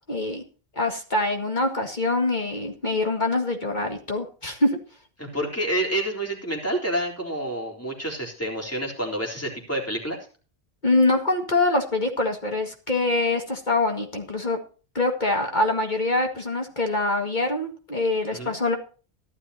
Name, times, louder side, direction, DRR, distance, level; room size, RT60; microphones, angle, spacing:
voice 1, 0.1-0.4 0.8-4.8 10.8-14.6 14.9-18.8, left 2 dB, 45° left, 3 dB, 2.1 m, -24 dB
voice 2, 5.2-10.2 18.3-18.5, right 1 dB, 15° left, 0 dB, 4.0 m, -28 dB
15.5 x 12.0 x 2.8 m, 0.37 s
omnidirectional pair, 1.1 m